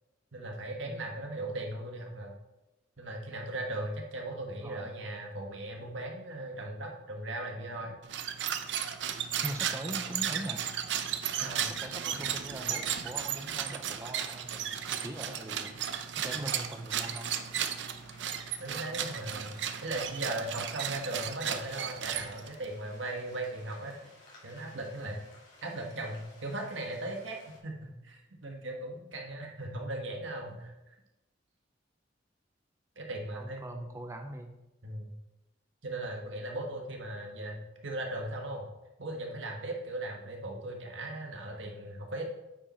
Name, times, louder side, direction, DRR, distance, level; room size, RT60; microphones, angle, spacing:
voice 1, 0.3-2.3 3.0-8.0 11.4-11.7 18.6-24.0 24.4-25.2 25.6-27.4 27.6-30.7 33.0-33.6 34.8-35.1 35.8-38.6 39.0-42.2, right 1 dB, 80° right, 1 dB, 1.4 m, -38 dB
sound 1, 8.0-22.7, right 9 dB, 65° right, 0.5 m, -35 dB
voice 2, 9.4-10.6 11.4-15.8 16.2-17.3 33.3-34.6, right 1 dB, 15° right, 4 dB, 0.5 m, -41 dB
sound 2, 12.5-27.6, left 2 dB, 65° left, 2.7 m, -58 dB
8.7 x 5.1 x 4.3 m, 0.96 s
head